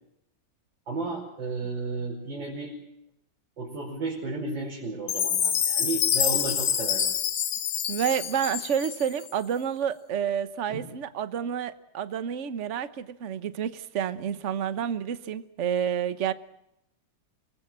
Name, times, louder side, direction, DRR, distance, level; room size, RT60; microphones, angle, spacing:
voice 1, 0.9-2.7 3.6-7.1 10.7-10.9, right 3 dB, 70° right, -4 dB, 5.9 m, -33 dB
Chime, 5.1-9.3, left 9 dB, 85° left, 2.0 m, -27 dB
voice 2, 7.9-16.3, right 8 dB, 45° right, 13 dB, 1.2 m, -29 dB
26.5 x 20.0 x 7.6 m, 0.80 s
omnidirectional pair, 2.1 m